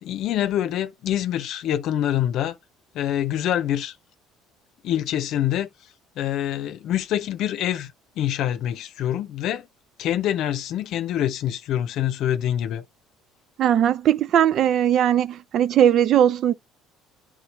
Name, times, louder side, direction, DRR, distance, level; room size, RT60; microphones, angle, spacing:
voice 1, 0.0-2.6 2.9-4.0 4.8-5.7 6.2-9.7 10.0-12.8, left 11 dB, 65° left, 0.7 m, -25 dB
voice 2, 13.6-16.5, right 10 dB, 55° right, 0.5 m, -19 dB
9.8 x 3.8 x 3.0 m
cardioid pair, 105°, 0 cm